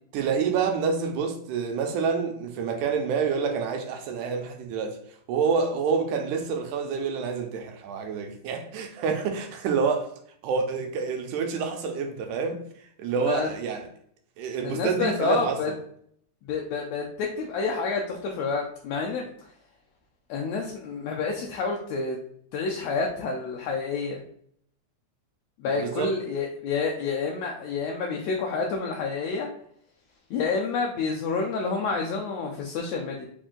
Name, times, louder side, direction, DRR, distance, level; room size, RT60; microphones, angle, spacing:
voice 1, 0.1-5.0 5.3-10.1 10.4-12.6 13.0-13.9 14.4-15.6 25.7-26.1, right 5 dB, 90° right, 2.1 m, -27 dB
voice 2, 13.2-13.5 14.6-15.7 16.5-19.3 20.3-22.2 22.5-24.2 25.6-29.5 30.3-33.3, left 4 dB, 80° left, 1.6 m, -29 dB
5.1 x 2.6 x 3.7 m
omnidirectional pair, 3.4 m